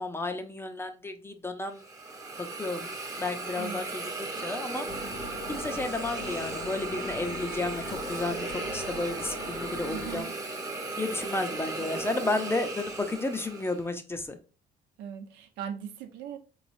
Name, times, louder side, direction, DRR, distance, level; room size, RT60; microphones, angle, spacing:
voice 1, 0.0-1.8 2.4-2.9 3.2-4.9 5.5-10.3 11.0-14.4, left 2 dB, 15° left, 0.6 m, -32 dB
Hiss, 1.7-13.8, right 3 dB, 20° right, 0.8 m, -36 dB
voice 2, 3.6-3.9 9.8-10.3 15.0-16.4, right 8 dB, 90° right, 0.8 m, -39 dB
sound 1, 4.9-10.2, left 4 dB, 70° left, 0.9 m, -42 dB
4.5 x 3.2 x 2.5 m
cardioid pair, 110°, 17 cm